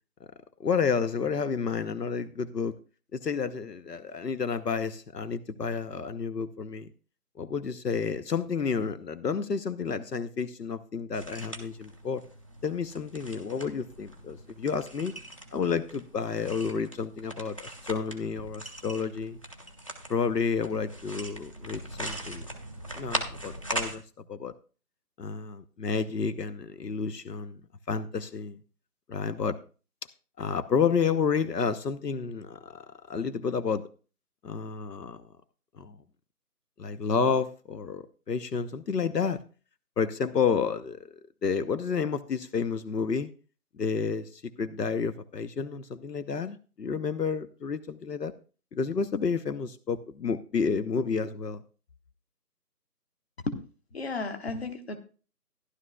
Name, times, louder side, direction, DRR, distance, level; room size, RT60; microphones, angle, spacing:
voice 1, 0.6-2.8 3.1-6.9 7.4-12.2 12.6-15.1 15.5-19.4 20.1-22.5 22.9-24.0 24.3-24.5 25.2-27.6 27.9-28.6 29.1-29.6 30.4-33.9 34.4-35.2 35.8-36.0 36.8-39.4 40.0-41.1 41.4-43.3 43.8-48.3 48.7-51.6, left 5 dB, 80° left, 12 dB, 0.8 m, -30 dB
sound 1, 11.1-24.0, right 1 dB, 20° left, 0.7 m, -40 dB
voice 2, 53.9-54.9, left 3 dB, 40° left, 7 dB, 1.3 m, -33 dB
14.5 x 11.5 x 2.2 m, 0.37 s
figure-of-eight pair, 160°, 48 cm